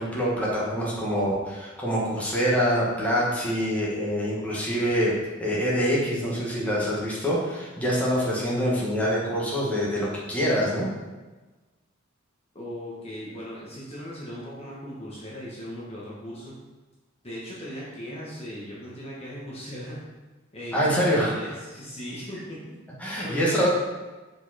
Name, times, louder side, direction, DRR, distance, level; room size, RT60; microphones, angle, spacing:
voice 1, 0.0-5.1 5.4-10.9 20.7-21.3 23.0-23.7, equal, 5° left, -6 dB, 1.7 m, -25 dB
voice 2, 12.5-16.5 17.2-20.1 20.5-22.8 23.2-23.7, equal, 30° left, -6 dB, 1.4 m, -38 dB
7.0 x 5.2 x 4.3 m, 1.2 s
head